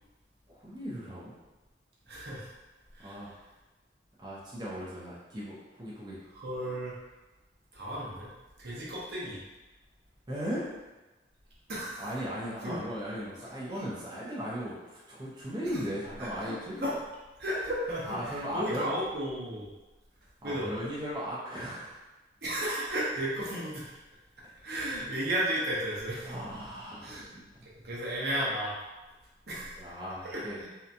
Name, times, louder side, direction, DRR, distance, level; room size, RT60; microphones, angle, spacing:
voice 1, 0.5-1.4 3.0-3.4 4.2-6.2 10.3-10.7 12.0-16.8 18.1-18.9 20.4-22.0 26.2-27.5 29.8-30.6, equal, 25° right, -8 dB, 0.5 m, -37 dB
voice 2, 2.1-2.5 2.9-3.2 6.3-6.9 7.7-8.3 8.6-9.4 11.7-12.1 12.6-12.8 16.2-16.5 16.8-17.0 17.4-19.7 20.4-20.7 22.4-24.0 24.6-26.4 27.0-27.3 27.7-28.8 29.5-29.8 30.2-30.7, right 1 dB, 60° right, -6 dB, 0.7 m, -34 dB
2.8 x 2.2 x 2.5 m, 1.1 s
head